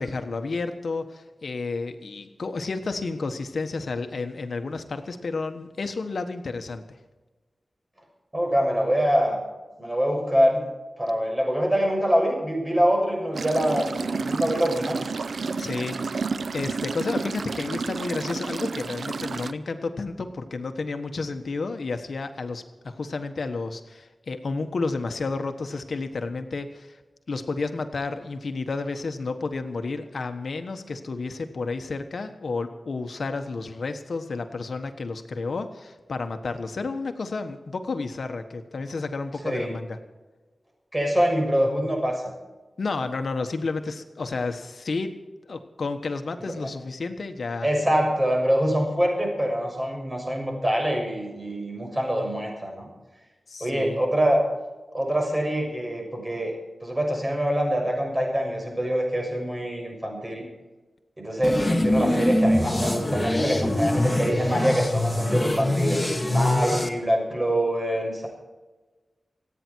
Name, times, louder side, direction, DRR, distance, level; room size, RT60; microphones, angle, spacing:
voice 1, 0.0-6.8 15.6-16.3 16.5-27.0 27.3-40.0 42.8-45.1 45.5-47.7 53.5-54.0, left 3 dB, 70° left, 7 dB, 1.3 m, -31 dB
voice 2, 8.3-9.4 9.8-10.7 11.0-15.0 39.4-39.7 40.9-42.2 46.4-46.5 47.6-52.9 53.6-54.4 54.9-56.5 56.8-60.5 61.2-66.0 66.3-68.3, equal, 20° right, 1 dB, 6.6 m, -24 dB
sound 1, 13.3-19.5, right 4 dB, 75° right, 0.6 m, -30 dB
sound 2, 61.4-66.9, left 1 dB, 20° left, 1.9 m, -23 dB
27.0 x 9.5 x 4.6 m, 1.2 s
wide cardioid pair, 75°, 0 cm